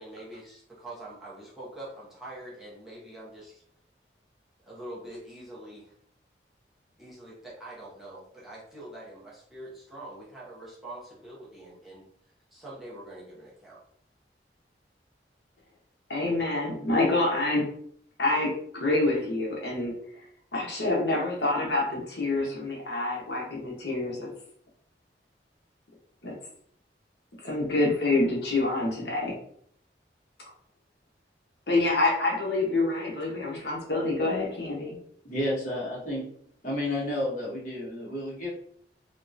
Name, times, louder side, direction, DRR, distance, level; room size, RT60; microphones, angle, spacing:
voice 1, 0.0-3.6 4.7-5.9 7.0-12.1 12.5-13.8, right 1 dB, ahead, -7 dB, 0.9 m, -44 dB
voice 2, 16.1-17.6 18.2-19.9 20.5-24.3 26.2-26.3 27.4-29.4 31.7-35.0, left 2 dB, 75° left, -2 dB, 1.0 m, -27 dB
voice 3, 35.2-36.3 36.6-38.5, left 1 dB, 45° left, -5 dB, 1.4 m, -31 dB
3.6 x 3.0 x 2.6 m, 0.65 s
head